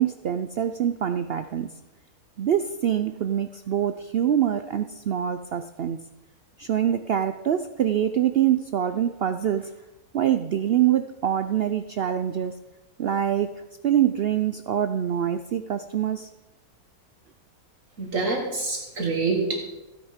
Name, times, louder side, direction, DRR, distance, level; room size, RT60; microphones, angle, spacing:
voice 1, 0.0-1.7 2.4-6.0 6.6-9.7 10.1-12.5 13.0-13.5 13.8-16.3, right 10 dB, 75° right, 10 dB, 0.5 m, -24 dB
voice 2, 18.0-19.7, right 3 dB, 55° right, 2 dB, 1.7 m, -26 dB
15.5 x 9.8 x 5.0 m, 1.0 s
omnidirectional pair, 1.6 m